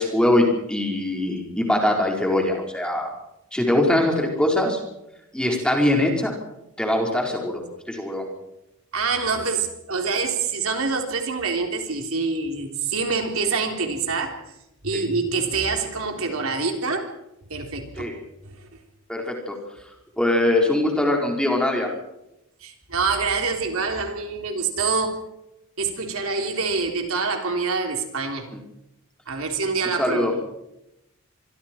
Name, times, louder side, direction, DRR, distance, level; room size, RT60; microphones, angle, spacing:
voice 1, 0.0-3.1 3.5-4.8 5.3-6.3 6.8-7.6 7.9-8.3 14.9-15.0 18.0-18.2 19.1-19.5 20.2-21.9 30.0-30.3, left 1 dB, 5° left, 0 dB, 4.3 m, -22 dB
voice 2, 8.9-14.4 14.8-17.1 17.5-18.1 18.5-18.6 22.6-25.2 25.8-28.5 29.3-30.3, right 4 dB, 70° right, 3 dB, 3.7 m, -26 dB
26.0 x 24.0 x 4.6 m, 0.88 s
head